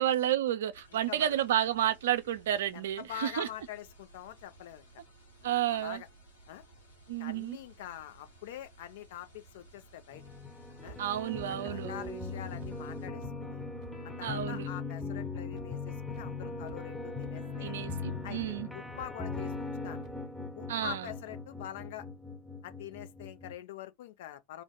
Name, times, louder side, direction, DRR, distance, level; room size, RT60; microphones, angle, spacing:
voice 1, 0.0-3.5 5.4-6.0 7.1-7.6 11.0-11.9 14.2-14.7 17.6-18.7 20.7-21.1, right 11 dB, 70° right, 0.3 m, -31 dB
sound 1, 0.7-13.1, right 2 dB, 85° left, 1.1 m, -58 dB
voice 2, 2.7-4.8 5.4-6.1 6.5-6.6 7.2-10.2 10.8-11.0 11.5-13.6 14.2-17.7 18.2-20.2 20.6-22.1 22.6-24.6, left 12 dB, 65° left, 0.5 m, -45 dB
sound 2, 10.1-23.5, left 3 dB, 5° left, 0.8 m, -40 dB
sound 3, 10.9-11.0 11.4-11.5 12.0-12.1 12.6-12.7 13.2-13.3 13.8-13.9 14.4-14.5 15.0-15.1 15.6-15.7 16.1-16.2 16.6-16.9 17.2-17.3 17.8-17.9 18.4-18.5 19.0-19.1 19.5-19.6 20.0-20.1, right 6 dB, 50° right, 0.7 m, -50 dB
2.5 x 2.1 x 3.7 m
figure-of-eight pair, 80°, 0 cm